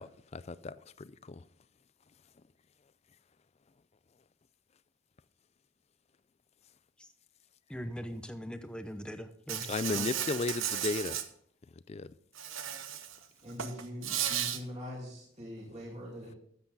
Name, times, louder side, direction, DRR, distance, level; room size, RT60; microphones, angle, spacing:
voice 1, 0.0-1.4 9.7-11.2 11.9-12.1, left 3 dB, 30° left, 0.4 m, -35 dB
voice 2, 7.7-10.1, equal, 5° left, 0.8 m, -41 dB
Insect, 9.5-11.2 12.4-13.2 13.5-14.6, right 10 dB, 80° right, 1.0 m, -34 dB
voice 3, 13.4-16.4, left 1 dB, 35° right, 2.4 m, -43 dB
13.0 x 8.4 x 4.0 m
head